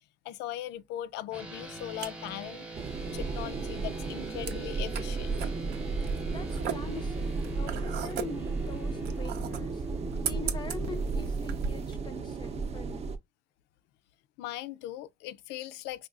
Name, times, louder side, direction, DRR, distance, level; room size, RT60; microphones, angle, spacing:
voice 1, 0.2-2.7 3.1-5.5 14.4-16.1, left 13 dB, 90° left, 0.4 m, -39 dB
sound 1, 1.3-11.3, right 1 dB, 5° right, 0.8 m, -43 dB
sound 2, 1.5-11.9, right 7 dB, 80° right, 0.6 m, -40 dB
sound 3, 2.7-13.2, right 4 dB, 40° right, 0.5 m, -34 dB
voice 2, 6.2-9.8 10.2-13.1, left 4 dB, 25° left, 0.5 m, -44 dB
4.8 x 2.3 x 2.5 m
cardioid pair, 110°, 17 cm